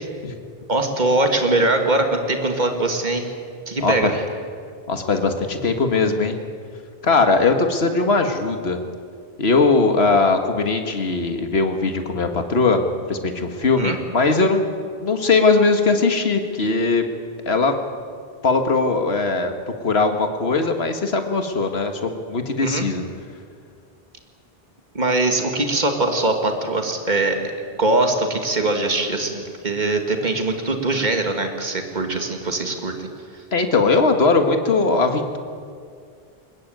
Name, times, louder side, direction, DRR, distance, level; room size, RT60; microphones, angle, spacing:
voice 1, 0.7-3.3 3.7-4.2 13.8-14.0 22.6-22.8 24.9-27.5 27.8-33.1 33.3-33.4, right 2 dB, 45° right, 5 dB, 2.3 m, -22 dB
voice 2, 3.8-4.1 4.9-6.4 7.0-8.8 9.4-12.8 13.1-14.7 15.0-17.0 17.5-17.7 18.4-19.5 19.8-23.0 33.5-35.4, left 3 dB, 75° left, 6 dB, 1.9 m, -19 dB
21.5 x 20.5 x 9.2 m, 2.2 s
omnidirectional pair, 1.0 m